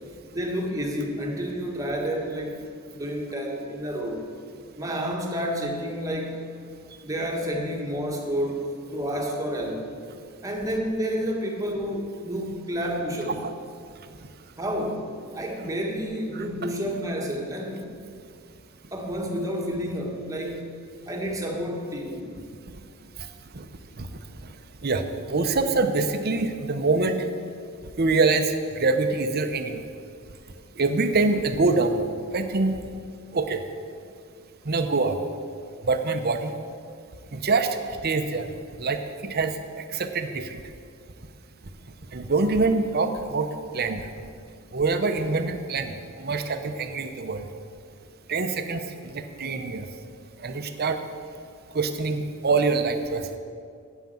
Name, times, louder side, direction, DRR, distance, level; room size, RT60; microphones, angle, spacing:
voice 1, 0.3-2.6 2.9-4.2 4.7-6.4 7.0-9.9 10.4-13.4 14.6-17.9 18.9-20.7 21.1-22.3, equal, 15° right, 0 dB, 1.5 m, -30 dB
voice 2, 16.3-16.7 23.5-23.7 24.0-24.1 24.8-27.3 28.0-29.9 30.8-32.0 32.3-32.8 33.3-33.6 34.6-35.1 35.8-36.5 37.3-38.5 38.8-40.6 42.1-43.5 43.7-44.0 44.7-47.5 48.3-49.9 50.4-51.0 51.7-53.3, right 3 dB, 45° right, 7 dB, 0.8 m, -25 dB
9.2 x 8.3 x 7.6 m, 2.3 s
head